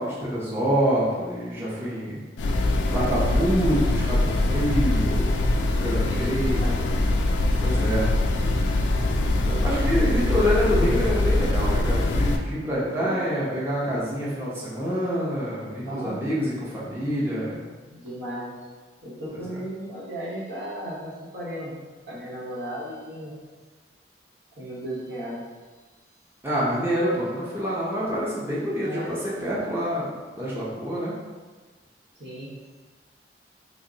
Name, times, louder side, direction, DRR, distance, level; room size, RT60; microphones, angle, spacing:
voice 1, 0.0-2.2 2.9-5.5 5.7-6.7 7.6-8.1 9.5-17.6 26.4-30.1 30.4-31.1, equal, 15° right, -8 dB, 0.6 m, -26 dB
sound 1, 2.4-12.4, left 2 dB, 90° left, 0.4 m, -23 dB
voice 2, 5.9-6.8 9.5-10.2 13.0-13.2 15.8-16.4 17.9-18.5 19.0-21.7 22.1-23.4 24.6-25.4 28.8-29.1 32.2-32.5, right 1 dB, 75° right, -7 dB, 1.1 m, -35 dB
3.5 x 2.1 x 3.8 m, 1.3 s
head